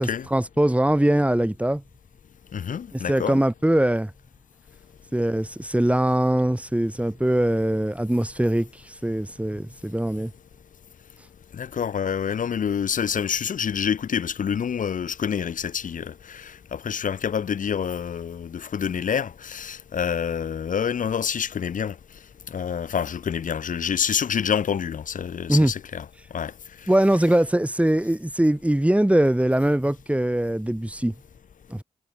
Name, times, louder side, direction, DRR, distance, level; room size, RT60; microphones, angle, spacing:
voice 1, 0.0-1.8 2.9-4.1 5.1-10.3 25.5-25.7 26.9-31.1 31.7-31.8, right 1 dB, 10° right, 3.6 m, -22 dB
voice 2, 2.5-3.4 11.5-22.0 22.5-26.0 26.3-26.5, left 7 dB, 70° left, 3.9 m, -27 dB
supercardioid pair, 45°, 14 cm